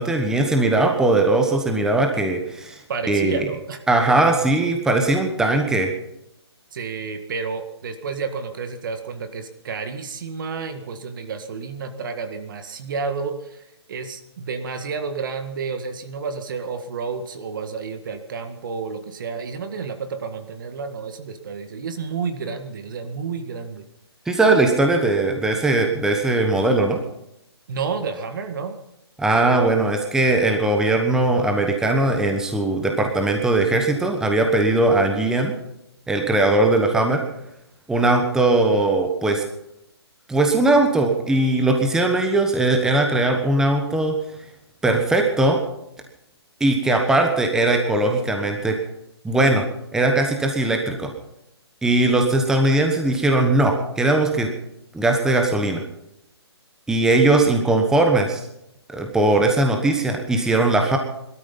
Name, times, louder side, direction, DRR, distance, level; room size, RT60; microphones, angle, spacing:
voice 1, 0.0-2.8 3.1-3.4 3.9-5.9 24.3-27.0 29.2-35.5 36.1-37.2 37.9-39.4 40.3-44.1 44.8-45.6 46.6-48.8 49.2-49.6 49.9-51.1 51.8-54.5 54.9-55.8 56.9-58.4 58.9-61.0, right 2 dB, 5° right, 3 dB, 1.2 m, -19 dB
voice 2, 2.9-3.8 6.7-13.6 13.9-23.9 27.7-28.8, right 5 dB, 50° right, 8 dB, 1.8 m, -30 dB
19.0 x 13.0 x 5.5 m, 0.83 s
figure-of-eight pair, 135°, 14 cm